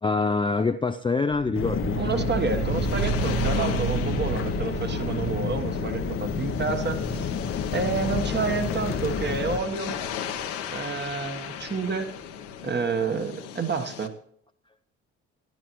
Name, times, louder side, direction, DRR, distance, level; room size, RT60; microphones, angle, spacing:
voice 1, 0.0-2.0, left 4 dB, 15° left, 8 dB, 0.5 m, -25 dB
sound 1, 1.3-12.3, right 5 dB, 65° right, 3.4 m, -33 dB
sound 2, 1.5-9.6, left 7 dB, 35° left, 0.8 m, -30 dB
sound 3, 1.9-14.1, left 9 dB, 75° left, 1.2 m, -37 dB
voice 2, 2.0-7.3 7.7-10.0 10.7-12.1 12.6-14.1, right 4 dB, 30° right, 8 dB, 1.3 m, -29 dB
15.0 x 11.0 x 3.1 m, 0.68 s
hypercardioid pair, 50°, 36 cm